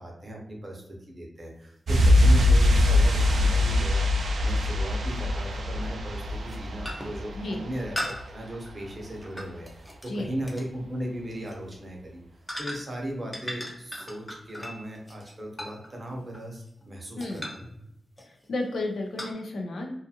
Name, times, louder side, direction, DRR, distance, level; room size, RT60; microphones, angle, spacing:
voice 1, 0.0-12.2 12.6-17.6, equal, 30° right, 0 dB, 0.7 m, -37 dB
sound 1, 1.9-2.0 4.5-4.6 5.7-6.0 6.4-6.6 6.9-7.2 8.0-10.1 10.5-10.7 11.4-11.6 12.5-13.0 13.3-16.8 17.2-17.7 18.2-18.5 19.2-19.3, left 1 dB, 10° left, 0.5 m, -38 dB
sound 2, 1.9-8.4 8.6-8.8, left 1 dB, 75° right, 0.4 m, -23 dB
voice 2, 17.2-17.5 18.3-19.9, left 2 dB, 80° left, 2 dB, 0.5 m, -32 dB
2.5 x 2.4 x 2.7 m, 0.79 s
wide cardioid pair, 125°, 0 cm